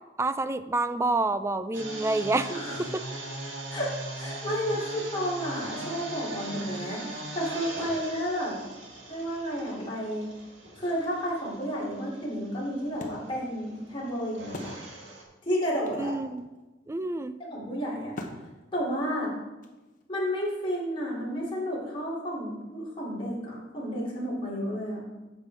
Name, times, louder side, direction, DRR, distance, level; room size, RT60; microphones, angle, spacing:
voice 1, 0.2-2.5 2.9-3.0 16.0-16.5 16.9-17.3, right 2 dB, 15° right, 11 dB, 0.3 m, -28 dB
sound 1, 1.7-15.2, right 2 dB, 85° right, 2.0 m, -40 dB
sound 2, 4.0-6.7 7.0-9.3 9.6-9.7 10.0-10.1 10.6-12.1 12.7-12.8, equal, 55° right, 3.3 m, -52 dB
voice 2, 4.2-8.6 9.1-10.3 10.8-14.8 15.4-16.1 17.5-18.2 18.7-19.3 20.1-25.0, equal, 30° left, -7 dB, 3.3 m, -31 dB
Wood, 10.9-15.3 15.6-15.7 15.9-20.2, left 1 dB, 45° left, 1.1 m, -46 dB
9.7 x 7.6 x 3.7 m, 1.1 s
head